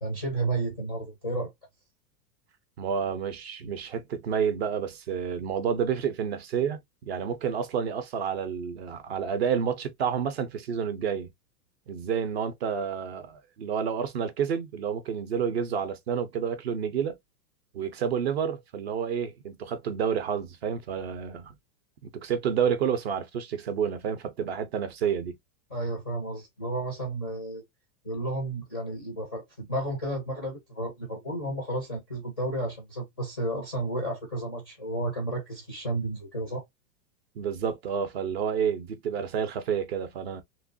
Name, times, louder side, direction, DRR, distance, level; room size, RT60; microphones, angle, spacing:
voice 1, 0.0-1.5 25.7-27.6 28.0-36.6, right 1 dB, 15° left, 0.4 m, -32 dB
voice 2, 2.8-11.3 11.9-17.2 17.7-21.5 22.0-25.4 37.4-40.4, right 7 dB, 40° right, 0.5 m, -29 dB
3.0 x 2.9 x 2.5 m
supercardioid pair, 175°, 50 cm